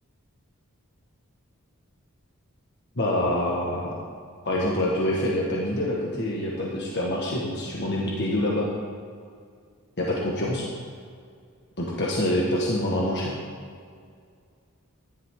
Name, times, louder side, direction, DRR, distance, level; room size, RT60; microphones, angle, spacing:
voice 1, 3.0-3.9 4.5-8.7 10.0-10.7 11.8-13.4, left 1 dB, 50° left, -4 dB, 1.7 m, -26 dB
13.0 x 11.5 x 3.9 m, 2.2 s
head